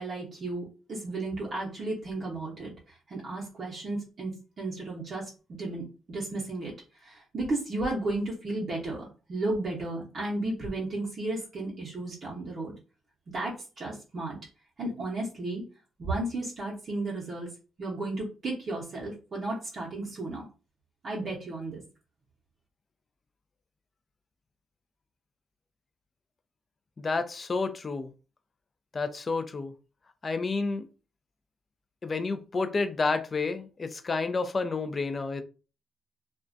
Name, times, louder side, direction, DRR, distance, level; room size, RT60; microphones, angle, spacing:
voice 1, 0.0-5.3 5.6-6.7 7.0-12.7 13.3-14.4 14.8-15.6 16.0-17.5 17.8-20.5 21.0-21.8, right 2 dB, 50° right, -5 dB, 0.7 m, -34 dB
voice 2, 27.0-28.1 28.9-29.7 30.2-30.9 32.0-35.4, left 4 dB, 35° left, 9 dB, 0.3 m, -30 dB
2.3 x 2.1 x 2.5 m, 0.34 s
cardioid pair, 90°, 0 cm